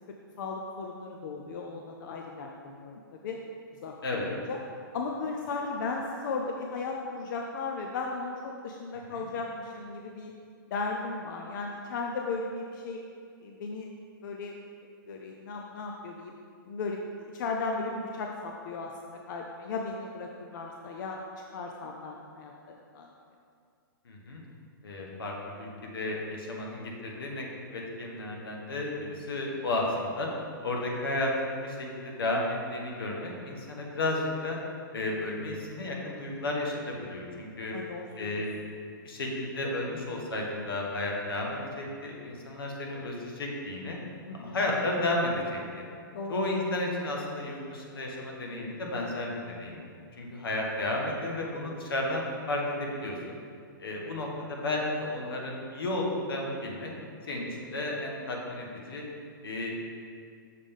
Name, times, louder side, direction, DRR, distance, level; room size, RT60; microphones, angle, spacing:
voice 1, 0.4-3.4 3.8-4.6 4.9-10.3 10.7-13.0 13.4-13.9 14.2-14.5 15.1-16.4 16.7-21.2 21.5-23.1 37.7-38.7 44.3-44.6 46.1-46.5 54.0-54.3, left 3 dB, 60° left, 1 dB, 0.6 m, -36 dB
voice 2, 24.0-24.4 24.8-27.5 27.7-30.3 30.6-34.6 34.9-37.8 38.2-38.5 39.0-44.0 44.3-45.8 46.3-49.8 50.2-53.4 53.8-56.9 57.3-59.0 59.4-59.7, left 2 dB, 90° left, -1 dB, 1.4 m, -33 dB
6.5 x 3.7 x 5.3 m, 2.3 s
hypercardioid pair, 145°, 12 cm